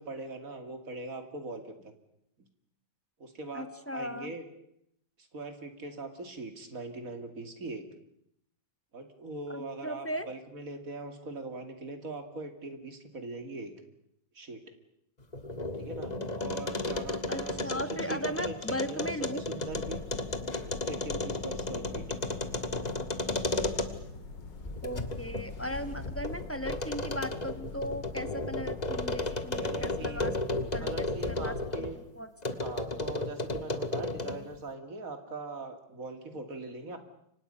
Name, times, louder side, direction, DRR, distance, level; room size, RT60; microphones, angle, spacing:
voice 1, 0.0-1.9 3.2-4.4 5.2-7.9 8.9-13.7 14.3-14.6 15.8-17.8 18.1-20.0 20.5-22.1 29.6-30.4 30.8-32.0 32.6-37.0, right 2 dB, 50° right, 6 dB, 3.0 m, -41 dB
voice 2, 3.5-4.3 9.5-10.3 17.3-19.4 24.8-31.9 32.1-32.3, equal, 10° left, 10 dB, 1.0 m, -37 dB
sound 1, 15.2-24.2 24.6-31.9 32.4-34.5, left 2 dB, 25° left, 1.4 m, -34 dB
sound 2, 19.7-31.7, left 4 dB, 80° left, 2.8 m, -44 dB
29.0 x 25.0 x 5.6 m, 0.75 s
omnidirectional pair, 1.9 m